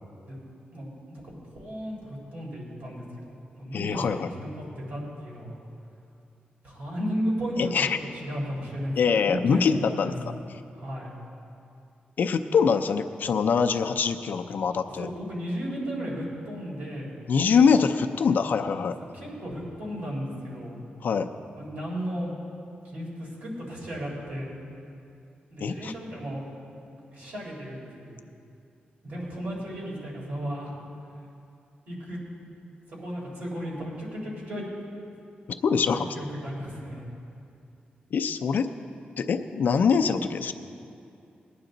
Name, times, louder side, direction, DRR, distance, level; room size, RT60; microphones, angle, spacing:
voice 1, 0.7-4.5 4.8-5.6 6.6-7.8 8.2-10.1 10.8-11.1 15.0-17.1 19.1-20.8 21.5-22.3 22.9-24.5 25.5-26.4 27.1-28.2 29.0-30.7 31.9-32.2 32.9-34.7 35.9-37.0, equal, 65° right, -4 dB, 3.9 m, -34 dB
voice 2, 3.7-4.3 7.6-8.0 9.0-10.1 12.2-15.1 17.3-19.0 21.0-21.3 25.6-25.9 35.5-36.2 38.1-38.7 39.2-40.5, left 6 dB, 65° left, 7 dB, 0.5 m, -24 dB
19.0 x 10.0 x 3.9 m, 2.5 s
wide cardioid pair, 155°, 3 cm